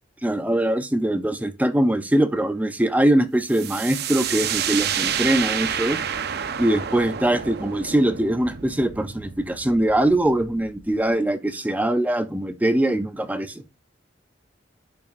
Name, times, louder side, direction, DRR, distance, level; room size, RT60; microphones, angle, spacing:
voice 1, 0.2-6.0 6.6-13.6, right 1 dB, 10° right, 0.6 m, -22 dB
sound 1, 3.5-11.1, right 8 dB, 60° right, 0.7 m, -29 dB
11.0 x 5.7 x 2.6 m
head